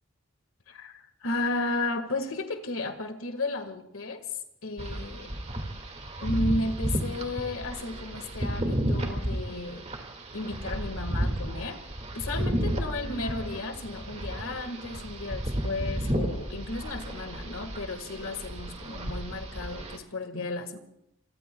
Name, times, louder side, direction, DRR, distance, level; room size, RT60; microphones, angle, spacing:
voice 1, 0.7-4.3 4.6-5.4 6.2-9.9 10.3-11.8 12.1-20.8, left 2 dB, 90° left, 7 dB, 1.8 m, -34 dB
sound 1, 4.8-20.0, right 1 dB, 30° right, 2.1 m, -33 dB
26.5 x 23.5 x 2.3 m, 0.79 s
head